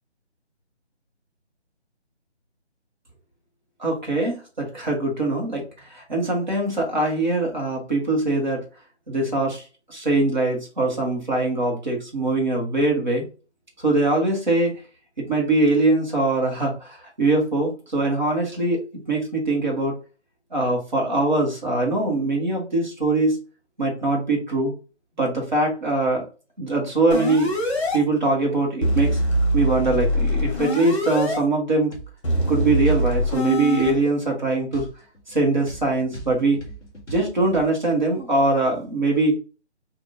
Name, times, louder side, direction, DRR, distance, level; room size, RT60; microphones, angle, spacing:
voice 1, 3.8-5.6 5.9-8.6 9.1-9.6 9.9-13.2 13.8-14.7 15.2-18.8 19.1-19.9 20.5-23.4 23.8-24.7 25.2-26.2 26.6-27.5 27.9-29.2 29.5-31.9 32.5-34.9 35.3-36.6 37.1-39.4, right 2 dB, 40° right, -1 dB, 1.3 m, -22 dB
sound 1, 27.1-28.0 28.8-31.4 32.2-33.9, right 1 dB, 25° left, 1.2 m, -23 dB
sound 2, 31.9-32.1 32.8-33.1 33.8-34.0 34.7-37.7, right 1 dB, ahead, 1.1 m, -39 dB
3.5 x 2.6 x 2.6 m, 0.34 s
figure-of-eight pair, 175°, 34 cm